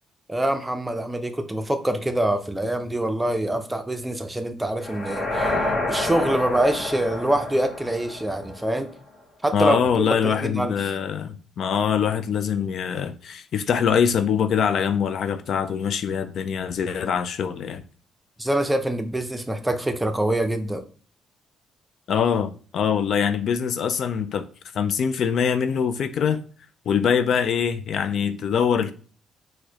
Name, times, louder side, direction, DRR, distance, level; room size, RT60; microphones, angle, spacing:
voice 1, 0.3-5.5 5.9-8.9 9.4-10.7 18.4-20.8, right 1 dB, 10° right, 0.5 m, -25 dB
sound 1, 4.8-8.9, left 2 dB, 45° left, 0.9 m, -29 dB
voice 2, 9.5-17.8 22.1-24.5 24.7-26.4 26.9-28.9, left 7 dB, 65° left, 0.3 m, -23 dB
4.5 x 2.1 x 2.8 m
cardioid pair, 90°, 0 cm